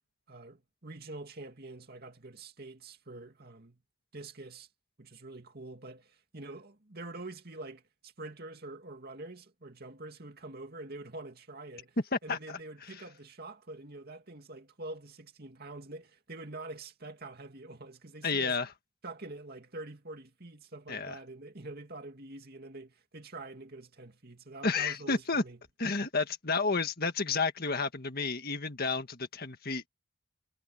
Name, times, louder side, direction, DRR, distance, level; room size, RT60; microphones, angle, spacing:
voice 1, 0.3-3.8 4.1-4.7 5.0-12.0 12.2-18.6 19.0-25.6, right 2 dB, 45° right, 2.5 m, -46 dB
voice 2, 12.1-12.6 18.2-18.7 20.9-21.2 24.6-25.4 25.8-29.9, left 4 dB, 45° left, 1.8 m, -31 dB
head